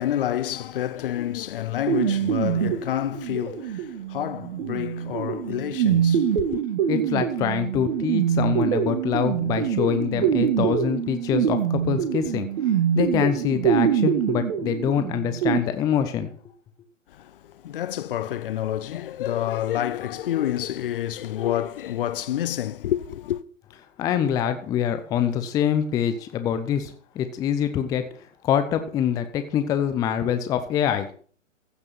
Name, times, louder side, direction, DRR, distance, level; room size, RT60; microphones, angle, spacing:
voice 1, 0.0-6.6 17.1-23.4, left 12 dB, 45° left, 0.7 m, -28 dB
sound 1, 1.9-15.6, right 8 dB, 45° right, 1.9 m, -24 dB
voice 2, 6.9-16.3 24.0-28.0 28.4-31.1, left 9 dB, 10° left, 0.5 m, -25 dB
15.0 x 6.0 x 6.0 m
figure-of-eight pair, 125°, 39 cm